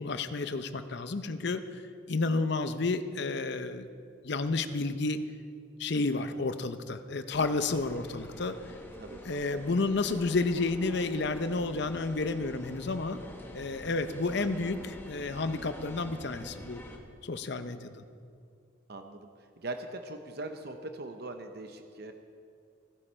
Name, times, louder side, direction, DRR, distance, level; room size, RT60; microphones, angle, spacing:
voice 1, 0.0-1.8 2.1-3.9 4.2-5.2 5.8-8.6 9.2-13.2 13.5-16.8 17.2-18.0, left 3 dB, 55° left, 10 dB, 0.7 m, -31 dB
sound 1, 7.3-17.0, equal, 10° left, 1.2 m, -47 dB
voice 2, 9.0-9.6 14.0-14.1 18.9-19.3 19.6-22.1, right 2 dB, 50° right, 6 dB, 0.7 m, -41 dB
16.5 x 11.5 x 4.4 m, 2.3 s
head